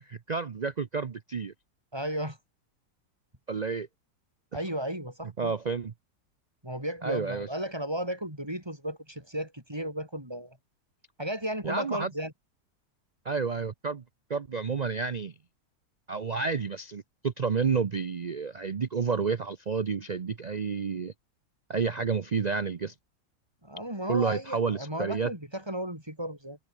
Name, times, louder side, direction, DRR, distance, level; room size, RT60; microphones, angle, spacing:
voice 1, 0.0-1.5 3.5-3.9 5.4-5.9 7.0-7.5 11.6-12.1 13.2-14.0 14.3-15.3 16.1-21.1 21.7-22.9 24.1-25.3, right 5 dB, 55° right, 0.4 m, -30 dB
voice 2, 1.9-2.4 4.5-5.5 6.6-10.6 11.2-12.3 23.6-26.6, right 1 dB, 15° right, 6.4 m, -34 dB
omnidirectional pair, 1.7 m